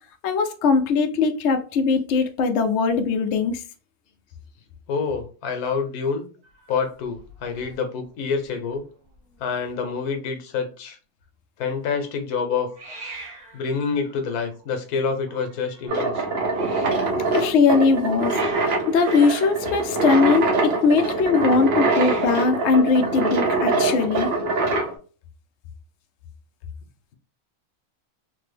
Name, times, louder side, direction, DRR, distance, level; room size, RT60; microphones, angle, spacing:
voice 1, 0.2-3.6 17.3-18.4 18.6-24.3, left 4 dB, 65° left, 0.7 m, -20 dB
voice 2, 4.9-6.3 6.7-8.9 9.4-11.0 11.6-12.7 13.5-16.2, left 5 dB, 90° left, 1.2 m, -27 dB
Hiss, 6.4-7.8 8.0-8.5 8.8-8.9 9.0-9.7 12.7-17.0 17.8-20.7 21.7-22.6, right 3 dB, 75° right, 1.6 m, -42 dB
sound 1, 15.9-24.9, right 3 dB, 60° right, 0.7 m, -24 dB
3.3 x 2.0 x 3.3 m
omnidirectional pair, 1.6 m